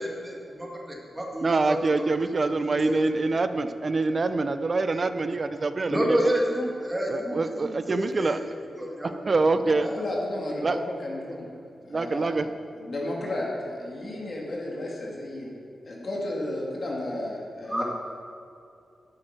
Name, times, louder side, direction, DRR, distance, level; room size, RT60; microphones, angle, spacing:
voice 1, 0.0-2.0 2.6-3.0 5.9-8.4 8.8-9.2 9.8-10.0 17.7-17.8, equal, 10° right, -2 dB, 1.9 m, -29 dB
voice 2, 1.4-6.2 7.1-8.6 9.0-9.9 10.6-10.8 11.9-12.5, right 3 dB, 35° right, 11 dB, 0.6 m, -25 dB
voice 3, 9.6-11.5 11.8-12.4 12.7-15.5 15.9-17.8, left 1 dB, 40° left, -3 dB, 2.2 m, -33 dB
11.5 x 8.7 x 6.6 m, 2.6 s
wide cardioid pair, 155°, 0 cm